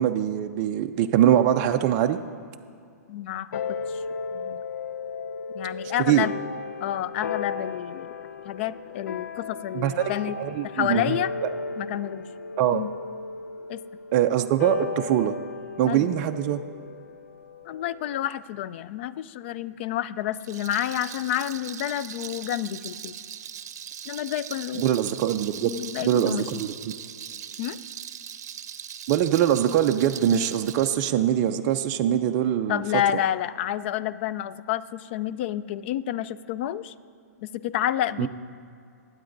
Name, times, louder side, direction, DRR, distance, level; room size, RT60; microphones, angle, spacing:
voice 1, 0.0-2.2 6.0-6.3 9.7-10.0 10.4-11.2 12.6-12.8 14.1-15.3 15.8-16.6 24.8-25.7 26.0-27.0 29.1-32.8 38.2-38.3, right 11 dB, 35° right, 6 dB, 0.4 m, -23 dB
voice 2, 3.1-4.0 4.3-4.6 5.5-6.3 6.8-8.1 8.4-10.4 10.6-11.3 11.8-12.2 12.7-12.9 13.7-13.8 15.8-16.1 17.7-23.2 24.1-24.8 25.6-26.6 27.6-27.8 32.7-36.9 37.4-38.3, left 12 dB, 40° left, 16 dB, 0.3 m, -29 dB
sound 1, 3.5-18.3, left 4 dB, 80° left, 0.7 m, -35 dB
Rattle, 20.3-31.0, right 9 dB, 65° right, 0.7 m, -40 dB
21.0 x 8.7 x 2.6 m, 2.4 s
hypercardioid pair, 145°, 9 cm